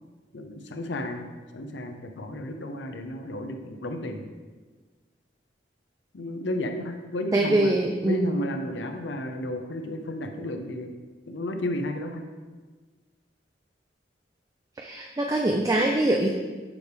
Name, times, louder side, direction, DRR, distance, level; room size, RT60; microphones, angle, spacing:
voice 1, 0.3-1.3 1.5-4.2 6.1-7.7 8.1-10.9 11.3-12.3, left 1 dB, 80° left, 6 dB, 0.6 m, -32 dB
voice 2, 7.3-8.3 14.8-16.3, right 1 dB, 20° right, 1 dB, 0.3 m, -23 dB
6.9 x 3.4 x 4.7 m, 1.4 s
head